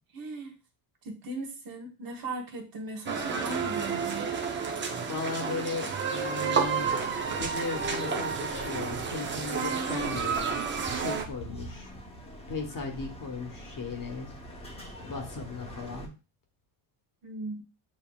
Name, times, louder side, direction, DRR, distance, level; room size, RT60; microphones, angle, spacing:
voice 1, 0.1-0.5 1.0-4.3 17.2-17.6, right 3 dB, 45° right, 3 dB, 1.0 m, -38 dB
sound 1, 3.1-11.3, right 5 dB, 25° right, 0.5 m, -30 dB
voice 2, 5.1-6.9 7.4-10.6 10.9-11.9 12.5-14.4 15.0-16.1, left 4 dB, 40° left, 3 dB, 1.0 m, -36 dB
sound 2, 6.6-16.1, right 1 dB, 10° left, 0.7 m, -45 dB
7.1 x 2.8 x 2.2 m, 0.31 s
cardioid pair, 150°, 49 cm